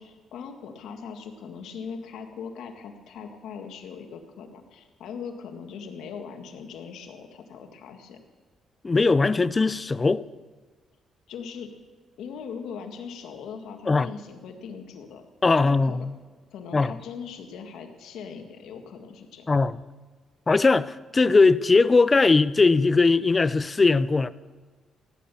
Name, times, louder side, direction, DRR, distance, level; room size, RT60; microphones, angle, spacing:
voice 1, 0.0-8.2 11.3-11.7 12.2-15.2 15.6-16.1 16.5-19.5, left 6 dB, 80° left, 1.8 m, -40 dB
voice 2, 8.8-10.2 13.9-14.1 15.4-16.1 16.7-16.9 19.5-19.8 20.5-24.3, left 3 dB, 25° left, 0.5 m, -20 dB
16.0 x 10.0 x 6.9 m
cardioid pair, 90°, 0 cm